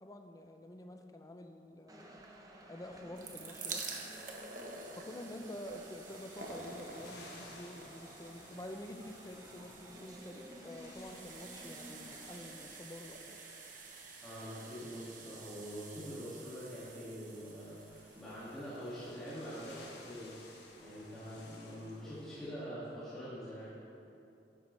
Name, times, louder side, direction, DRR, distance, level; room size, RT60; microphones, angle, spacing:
voice 1, 0.0-2.1 2.7-3.8 4.9-13.4, left 1 dB, 20° left, 5 dB, 0.6 m, -48 dB
sound 1, 1.9-12.6, right 1 dB, 20° right, 0.9 m, -55 dB
sound 2, 2.9-19.9 20.7-20.8 21.0-21.1, right 4 dB, 45° right, 1.1 m, -49 dB
sound 3, 6.3-22.5, left 2 dB, 65° left, 1.6 m, -58 dB
voice 2, 14.2-20.4 20.8-23.8, equal, 5° left, -13 dB, 2.2 m, -45 dB
12.0 x 9.2 x 3.3 m, 2.7 s
head